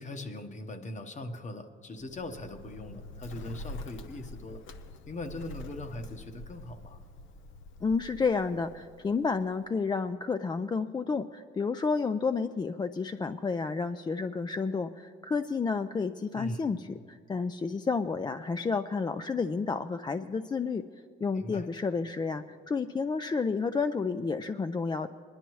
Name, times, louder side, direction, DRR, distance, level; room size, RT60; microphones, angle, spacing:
voice 1, 0.0-4.6 5.1-7.0 16.4-16.7 21.4-21.7, left 1 dB, 35° left, 7 dB, 1.1 m, -40 dB
Bird, 1.9-9.7, left 2 dB, 75° left, 0.7 m, -46 dB
voice 2, 7.8-20.8 21.2-25.1, left 4 dB, 20° left, 9 dB, 0.3 m, -30 dB
20.5 x 11.5 x 3.1 m, 2.2 s
cardioid pair, 90°, 20 cm